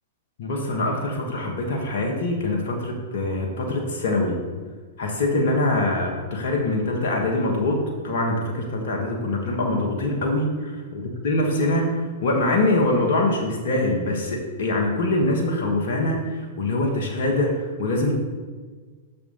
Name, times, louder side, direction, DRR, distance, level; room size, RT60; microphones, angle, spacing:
voice 1, 0.4-4.4 5.0-18.1, left 2 dB, 65° left, 0 dB, 1.4 m, -24 dB
6.4 x 4.2 x 5.4 m, 1.5 s
hypercardioid pair, 105°, 0 cm